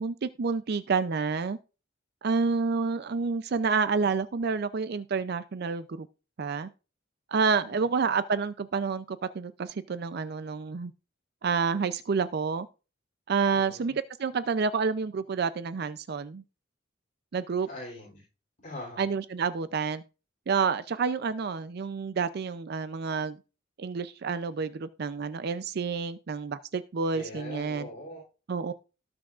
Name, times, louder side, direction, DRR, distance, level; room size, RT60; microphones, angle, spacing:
voice 1, 0.0-1.6 2.2-6.1 6.4-6.7 7.3-10.9 11.4-12.7 13.3-16.4 17.3-17.7 19.0-20.0 20.5-23.4 23.8-27.9 28.5-28.7, right 5 dB, 55° right, 0.4 m, -29 dB
voice 2, 13.5-13.9 17.7-18.2 18.6-19.0 27.1-28.2, left 1 dB, 40° left, 3.1 m, -42 dB
18.5 x 6.2 x 2.4 m
head